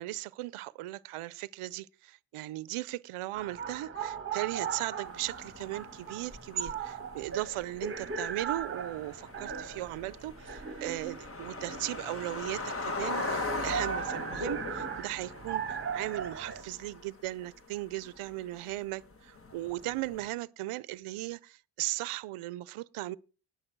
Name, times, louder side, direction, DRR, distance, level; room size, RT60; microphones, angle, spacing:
voice 1, 0.0-23.2, right 17 dB, 85° right, 0.7 m, -37 dB
sound 1, 3.3-16.6, right 6 dB, 25° right, 1.3 m, -38 dB
sound 2, 5.0-20.3, left 3 dB, 25° left, 1.3 m, -41 dB
19.0 x 7.1 x 4.6 m
cardioid pair, 145°, 50 cm